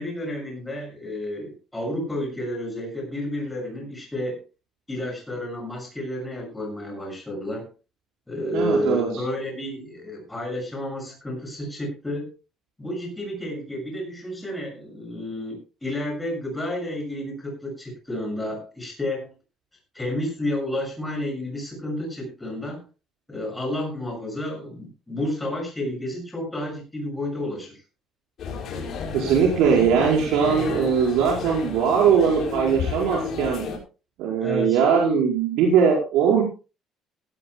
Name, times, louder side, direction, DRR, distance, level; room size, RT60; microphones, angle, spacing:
voice 1, 0.0-4.4 4.9-7.7 8.3-12.3 12.8-19.3 19.9-22.8 23.3-27.8 34.4-34.8, left 1 dB, 5° left, 1 dB, 6.6 m, -31 dB
voice 2, 8.5-9.1 29.1-33.6 34.2-36.4, right 7 dB, 85° right, -2 dB, 4.8 m, -20 dB
sound 1, 28.4-33.8, left 5 dB, 45° left, 5.9 m, -31 dB
17.0 x 16.5 x 2.2 m, 0.32 s
cardioid pair, 175°, 0 cm